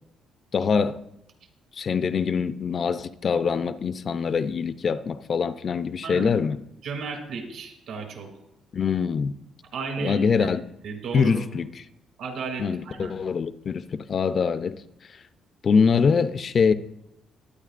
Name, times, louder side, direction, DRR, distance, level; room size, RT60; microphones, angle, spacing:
voice 1, 0.5-1.0 1.8-6.6 8.7-9.3 10.0-10.6 11.1-11.8 12.6-14.8 15.6-16.7, left 6 dB, 35° left, 0.4 m, -24 dB
voice 2, 6.0-6.3 6.8-8.3 9.7-10.5 10.8-11.5 12.2-13.2, right 4 dB, 65° right, 2.4 m, -34 dB
21.0 x 9.6 x 2.5 m
cardioid pair, 160°, 0 cm